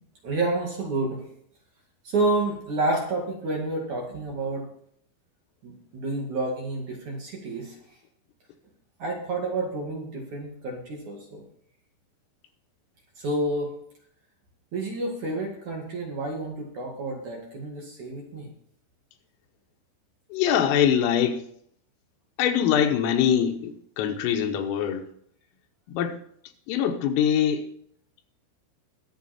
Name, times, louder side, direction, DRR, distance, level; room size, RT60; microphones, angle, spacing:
voice 1, 0.2-1.2 2.0-4.7 5.6-7.8 9.0-11.4 13.2-13.7 14.7-18.5, right 2 dB, 50° right, 2.7 m, -29 dB
voice 2, 20.3-21.4 22.4-25.1 25.9-26.2 26.7-27.7, left 9 dB, 90° left, 3.9 m, -23 dB
21.5 x 7.6 x 4.3 m
omnidirectional pair, 5.8 m